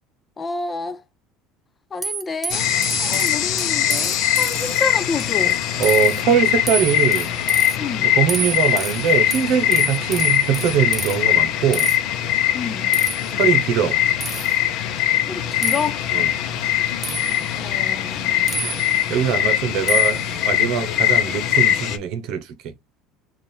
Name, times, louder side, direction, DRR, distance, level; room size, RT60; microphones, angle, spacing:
voice 1, 0.4-1.0 1.9-2.7 3.0-5.6 7.8-8.1 12.5-12.9 15.2-16.0 17.5-18.9, left 4 dB, 20° left, 0.3 m, -29 dB
sound 1, 2.0-4.8 5.2-5.6 5.8-6.2 6.7-7.8 8.3-11.2 11.7-12.0 12.9-13.3 14.2-14.6 15.6-15.9 17.0-17.5 18.5-19.1 19.9-20.3, right 4 dB, 10° right, 0.7 m, -29 dB
sound 2, 2.5-22.0, left 12 dB, 55° left, 0.7 m, -21 dB
voice 2, 5.8-7.3 8.0-11.9 13.3-14.0 16.1-16.3 19.1-22.5, right 8 dB, 55° right, 0.8 m, -22 dB
3.4 x 2.4 x 4.3 m
cardioid pair, 150°, 0 cm